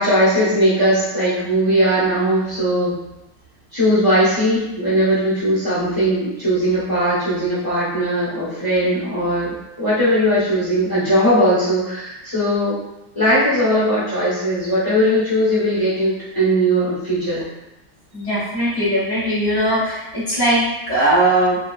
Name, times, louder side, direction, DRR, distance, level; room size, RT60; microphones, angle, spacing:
voice 1, 0.0-3.0 3.7-12.8 13.1-17.4, equal, 55° left, -10 dB, 0.3 m, -19 dB
voice 2, 18.1-21.6, right 1 dB, 20° right, -9 dB, 0.6 m, -19 dB
2.9 x 2.7 x 2.3 m, 0.94 s
omnidirectional pair, 2.3 m